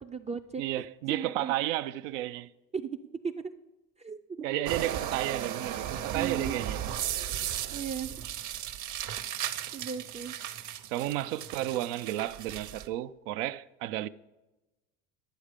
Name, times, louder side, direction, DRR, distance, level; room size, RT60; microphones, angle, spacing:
voice 1, 0.0-1.7 2.7-2.9 3.2-3.5 4.0-4.2 6.1-6.6 7.2-7.3 7.7-8.3 9.7-10.3, right 6 dB, 20° right, 0.3 m, -37 dB
voice 2, 0.6-2.5 4.4-6.8 10.9-14.1, right 14 dB, 90° right, 0.5 m, -32 dB
sound 1, 4.7-12.9, right 10 dB, 50° right, 0.8 m, -36 dB
11.5 x 7.3 x 5.0 m
supercardioid pair, 100°, 37 cm